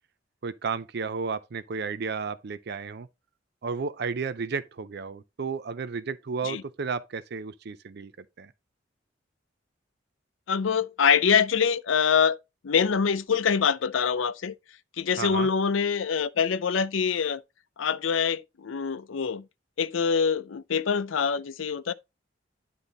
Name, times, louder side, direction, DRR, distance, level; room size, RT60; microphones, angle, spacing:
voice 1, 0.4-3.1 3.6-8.1 8.4-8.5 15.2-15.5, right 5 dB, 55° right, 0.5 m, -33 dB
voice 2, 10.5-12.4 12.6-14.5 15.0-17.4 17.8-19.4 19.8-21.9, left 6 dB, 85° left, 0.5 m, -25 dB
9.9 x 3.8 x 3.9 m
head